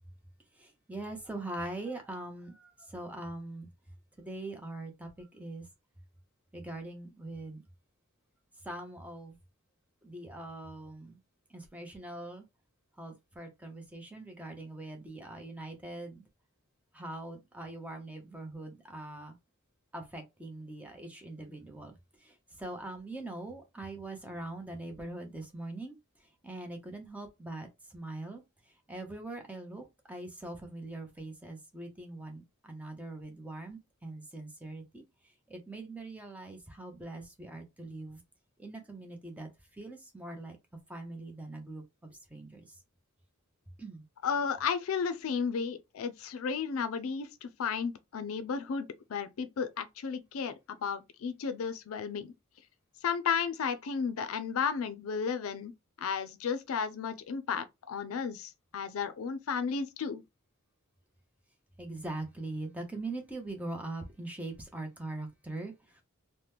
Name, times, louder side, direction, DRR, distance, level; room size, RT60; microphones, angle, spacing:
voice 1, 0.6-3.7 4.2-5.7 6.5-7.6 8.6-9.4 10.0-11.2 11.5-12.5 13.0-16.2 16.9-19.3 19.9-28.4 28.9-35.0 35.5-38.2 38.6-40.6 40.9-42.8 43.8-44.0 61.8-66.0, right 2 dB, 5° right, 0.6 m, -42 dB
voice 2, 44.2-50.5 50.8-52.3 53.0-55.7 56.0-60.2, left 6 dB, 75° left, 0.4 m, -33 dB
2.9 x 2.1 x 3.3 m
head